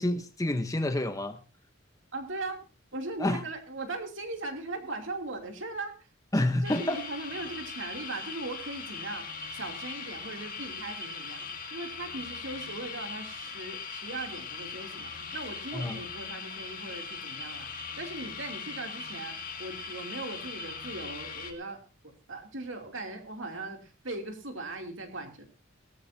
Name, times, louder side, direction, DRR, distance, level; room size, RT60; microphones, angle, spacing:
voice 1, 0.0-1.4 3.2-3.4 6.3-7.0 15.7-16.0, left 1 dB, 15° left, 9 dB, 0.9 m, -28 dB
voice 2, 2.1-2.6 2.9-5.9 6.4-9.2 9.5-19.3 19.6-21.8 22.3-23.8 24.0-25.4, right 2 dB, 65° right, 4 dB, 2.8 m, -39 dB
sound 1, 6.6-21.5, left 5 dB, 40° left, 2.2 m, -40 dB
18.5 x 13.5 x 2.7 m, 0.33 s
head